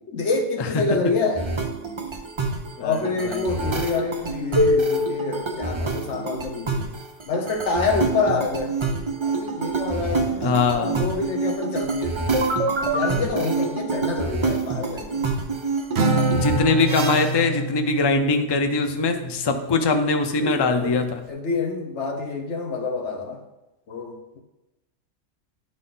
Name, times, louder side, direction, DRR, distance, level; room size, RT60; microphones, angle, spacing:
voice 1, 0.1-1.5 2.8-6.9 7.3-8.7 9.2-10.4 10.7-12.2 12.8-15.3 20.4-21.0 21.3-23.4 23.9-24.4, left 4 dB, 65° left, 2 dB, 1.2 m, -27 dB
sound 1, 1.4-17.5, right 2 dB, 30° right, 0.6 m, -26 dB
voice 2, 2.8-3.4 10.4-11.0 16.3-21.1, left 3 dB, 35° left, 6 dB, 0.4 m, -22 dB
Acoustic guitar, 16.0-19.6, right 2 dB, 60° right, 0.9 m, -26 dB
11.0 x 4.1 x 3.8 m, 0.97 s
omnidirectional pair, 1.3 m